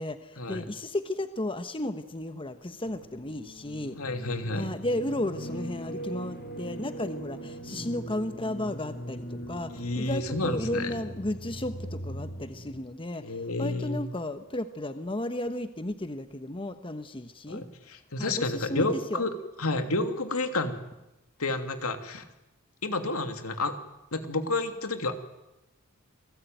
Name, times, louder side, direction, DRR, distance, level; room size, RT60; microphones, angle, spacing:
voice 1, 0.0-4.0 4.5-17.6 18.2-19.3, left 1 dB, 25° left, 9 dB, 1.2 m, -34 dB
sound 1, 2.8-12.8, right 1 dB, 45° left, 4.7 m, -40 dB
voice 2, 4.0-4.7 9.7-10.9 13.2-14.0 17.5-19.3 19.6-20.8 21.4-22.2 22.8-23.7 24.1-25.2, left 2 dB, 80° left, 7 dB, 2.8 m, -30 dB
28.5 x 19.5 x 9.3 m, 0.97 s
head